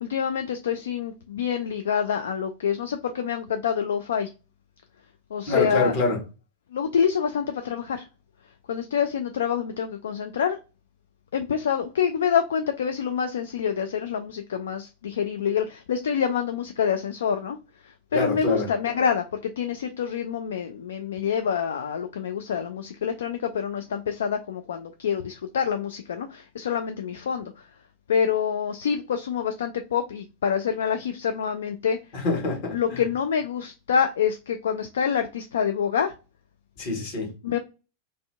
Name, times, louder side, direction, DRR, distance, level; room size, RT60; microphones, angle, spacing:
voice 1, 0.0-4.3 5.3-5.9 6.7-8.0 8.7-10.6 11.3-17.6 18.1-19.2 19.6-27.5 28.1-32.0 32.7-36.1 37.4-37.6, left 7 dB, 65° left, 0.3 m, -26 dB
voice 2, 5.5-6.2 18.1-18.7 32.1-33.0 36.8-37.3, left 3 dB, 45° left, 1.2 m, -26 dB
2.6 x 2.1 x 3.4 m
figure-of-eight pair, 90°, 0 cm